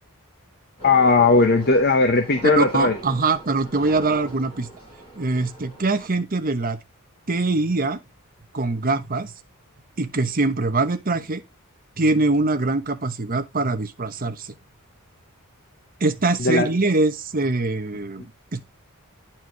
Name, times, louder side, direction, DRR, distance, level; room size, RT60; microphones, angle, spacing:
voice 1, 0.8-3.0 16.4-16.7, left 3 dB, 45° left, 0.9 m, -17 dB
sound 1, 0.8-6.1, right 1 dB, 25° left, 6.3 m, -40 dB
voice 2, 2.6-4.7 5.2-6.8 7.3-8.0 8.5-9.3 10.0-11.4 12.0-14.5 16.0-18.6, right 3 dB, 40° right, 1.1 m, -23 dB
9.6 x 4.5 x 4.7 m
head